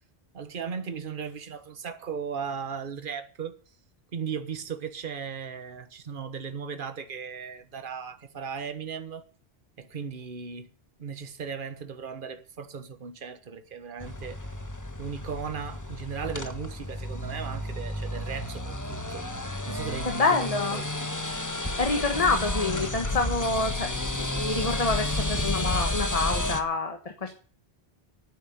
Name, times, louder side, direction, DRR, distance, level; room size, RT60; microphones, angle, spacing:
voice 1, 0.3-3.6 4.1-9.3 9.8-10.7 11.0-14.4 15.0-19.3 19.7-20.4 20.7-21.1, right 6 dB, 55° right, 1.3 m, -37 dB
sound 1, 14.0-26.6, left 1 dB, 15° left, 1.3 m, -31 dB
voice 2, 20.1-20.8 21.8-27.3, left 3 dB, 35° left, 1.4 m, -27 dB
10.5 x 9.3 x 9.4 m
omnidirectional pair, 1.1 m